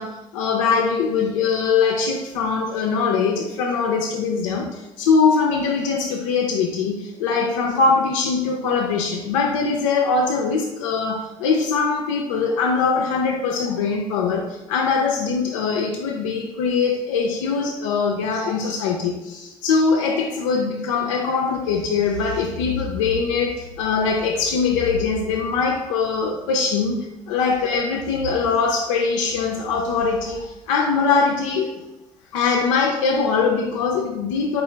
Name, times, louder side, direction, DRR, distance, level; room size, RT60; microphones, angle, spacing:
voice 1, 0.0-31.7 32.3-34.6, left 5 dB, 80° left, 0 dB, 0.4 m, -22 dB
4.6 x 2.4 x 3.1 m, 1.0 s
hypercardioid pair, 50°, 16 cm